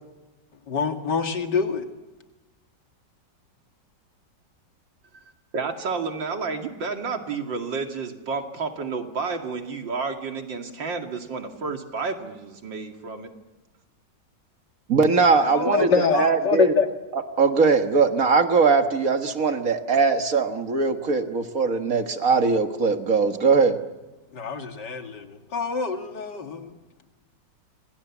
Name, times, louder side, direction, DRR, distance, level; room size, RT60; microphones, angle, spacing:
voice 1, 0.7-1.9 15.4-16.9 24.3-26.7, left 5 dB, 65° left, 5 dB, 2.7 m, -25 dB
voice 2, 5.5-13.3, right 4 dB, 90° right, 4 dB, 3.1 m, -31 dB
voice 3, 14.9-16.7 17.1-23.8, right 4 dB, 50° right, 7 dB, 1.9 m, -21 dB
29.5 x 26.5 x 7.3 m, 1.1 s
omnidirectional pair, 2.0 m